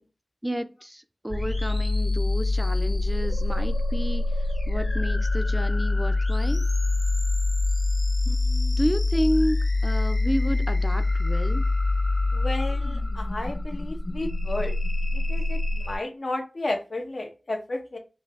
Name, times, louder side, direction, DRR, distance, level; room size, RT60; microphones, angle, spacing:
voice 1, 0.4-4.2 4.7-6.6 8.3-11.7, equal, 10° right, 0.4 m, -30 dB
sound 1, 1.3-15.9, left 2 dB, 35° left, 1.7 m, -25 dB
voice 2, 12.3-14.7 15.1-18.0, left 2 dB, 65° left, 1.1 m, -32 dB
5.9 x 2.7 x 2.7 m
wide cardioid pair, 65°, 0 cm